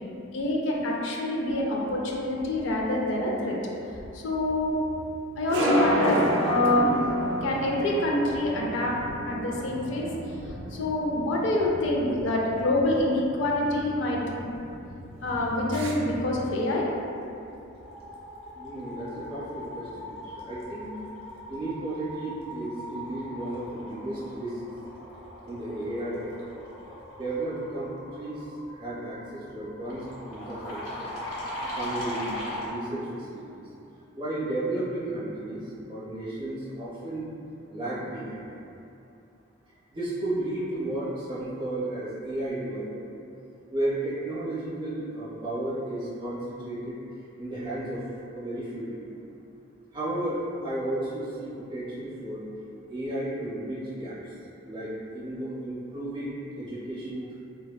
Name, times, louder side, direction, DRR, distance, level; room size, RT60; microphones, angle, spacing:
voice 1, 0.3-3.6 4.1-4.8 5.4-7.0 7.4-9.0 9.3-10.1 10.7-14.5 15.2-16.9, left 1 dB, 65° left, -2 dB, 0.4 m, -26 dB
sound 1, 2.7-16.6, right 1 dB, 60° right, 0.3 m, -32 dB
sound 2, 16.9-17.2 17.5-32.7, equal, 85° left, 0.7 m, -40 dB
voice 2, 18.5-21.0 21.5-24.6 25.5-26.4 27.1-28.4 28.7-31.1 31.8-33.6 34.1-37.3 37.7-38.4 39.9-42.9 43.7-47.0 47.4-48.0 48.3-49.0 49.9-52.4 52.9-54.1 54.6-57.4, right 1 dB, 25° right, -9 dB, 0.6 m, -33 dB
3.4 x 2.1 x 2.2 m, 2.7 s
head